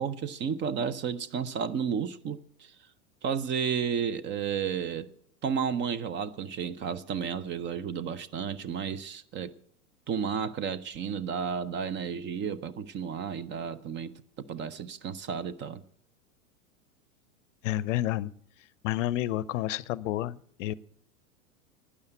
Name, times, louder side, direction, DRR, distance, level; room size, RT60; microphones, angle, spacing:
voice 1, 0.0-2.7 3.2-5.1 5.4-9.5 10.1-15.8, right 7 dB, 25° right, 0.6 m, -32 dB
voice 2, 17.6-18.3 18.8-20.7, left 14 dB, 60° left, 0.6 m, -30 dB
12.0 x 10.0 x 7.9 m
hypercardioid pair, 95°, 44 cm